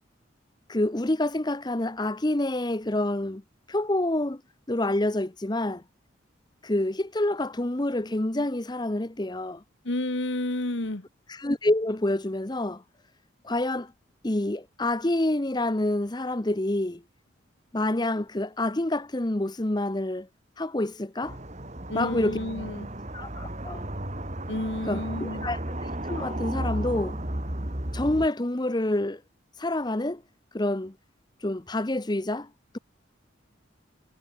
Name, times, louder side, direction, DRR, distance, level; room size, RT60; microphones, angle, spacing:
voice 1, 0.7-3.4 3.7-4.4 4.7-5.8 6.6-9.6 11.3-12.8 13.4-13.9 14.2-17.0 17.7-20.3 20.6-21.4 21.9-22.4 23.1-23.9 24.9-27.2 27.9-29.2 29.6-30.2 30.5-30.9 31.4-32.5, left 1 dB, 20° left, 0.8 m, -27 dB
voice 2, 9.8-11.0 21.9-22.9 24.5-25.5, left 1 dB, 65° left, 1.6 m, -30 dB
sound 1, 21.2-28.3, right 1 dB, 35° right, 2.8 m, -34 dB
head